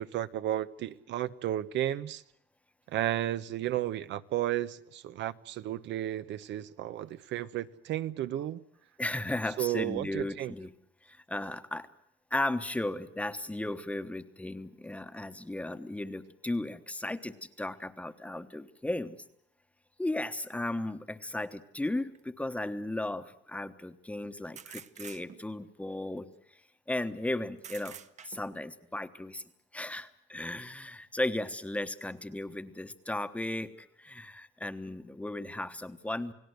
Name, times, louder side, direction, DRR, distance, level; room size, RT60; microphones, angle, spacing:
voice 1, 0.0-2.2 2.9-8.6 9.6-10.5, right 12 dB, 70° right, 0.9 m, -33 dB
voice 2, 9.0-10.7 11.0-11.9 12.3-19.2 20.0-26.3 26.9-28.0 28.2-29.4 29.7-36.3, left 1 dB, 5° left, 1.1 m, -35 dB
sound 1, 22.1-22.2 24.5-25.6 27.6-28.6, right 8 dB, 40° right, 0.9 m, -47 dB
29.5 x 18.0 x 8.0 m
cardioid pair, 160°, 19 cm